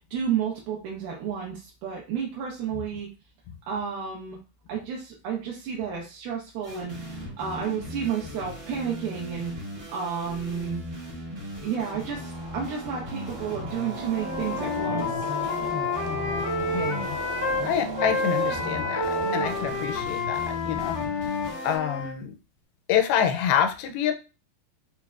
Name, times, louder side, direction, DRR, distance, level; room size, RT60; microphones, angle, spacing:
voice 1, 0.1-3.1 3.7-4.4 4.7-9.5 9.9-10.9 11.6-15.3, right 7 dB, 80° right, -2 dB, 2.5 m, -31 dB
sound 1, 6.6-21.8, equal, 35° right, 0.7 m, -38 dB
sound 2, 11.7-20.1, right 2 dB, 60° right, 0.9 m, -38 dB
Wind instrument woodwind instrument, 14.1-17.7 18.0-22.2, left 3 dB, 70° left, 1.2 m, -29 dB
voice 2, 16.1-16.5 16.7-17.2 17.6-21.4 21.6-22.4 22.9-24.1, left 8 dB, 85° left, 8 dB, 2.4 m, -27 dB
5.9 x 2.1 x 2.3 m, 0.30 s
omnidirectional pair, 4.2 m